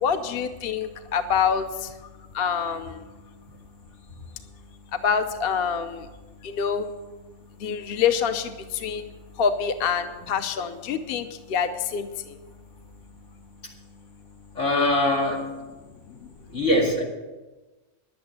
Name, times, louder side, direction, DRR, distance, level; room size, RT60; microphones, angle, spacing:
voice 1, 0.0-1.9 2.3-3.0 5.0-6.1 6.4-6.9 7.6-9.1 9.4-12.1, left 7 dB, 55° left, 8 dB, 0.9 m, -26 dB
voice 2, 14.5-15.5 16.5-17.0, left 1 dB, 90° left, -2 dB, 2.8 m, -22 dB
11.0 x 8.7 x 7.5 m, 1.2 s
omnidirectional pair, 1.3 m